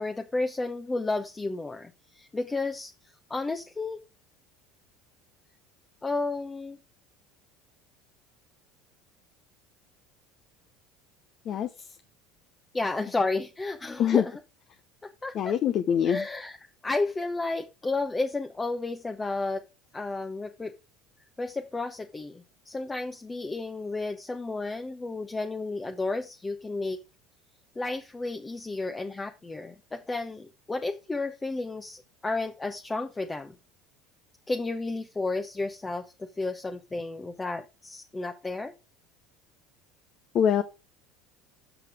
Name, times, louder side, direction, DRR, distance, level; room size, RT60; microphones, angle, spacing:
voice 1, 0.0-2.9 3.3-4.0 6.0-6.8 12.7-14.3 15.0-15.6 16.0-16.6 16.8-19.6 19.9-20.7 21.4-27.0 27.8-33.5 34.5-38.7, left 3 dB, 20° left, 5 dB, 0.8 m, -32 dB
voice 2, 15.3-16.2 40.3-40.6, left 9 dB, 50° left, 10 dB, 0.6 m, -23 dB
7.0 x 5.8 x 4.7 m, 0.28 s
hypercardioid pair, 80°, 0 cm